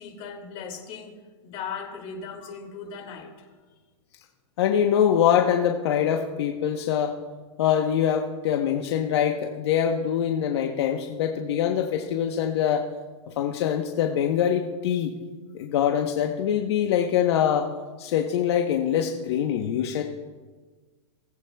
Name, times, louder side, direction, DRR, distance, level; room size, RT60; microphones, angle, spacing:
voice 1, 0.0-3.5, left 6 dB, 35° left, 3 dB, 2.0 m, -38 dB
voice 2, 4.6-7.1 7.6-12.8 13.4-15.1 15.5-17.7 18.0-20.0, left 9 dB, 60° left, 3 dB, 1.0 m, -24 dB
20.0 x 7.9 x 2.3 m, 1.3 s
hypercardioid pair, 145°, 16 cm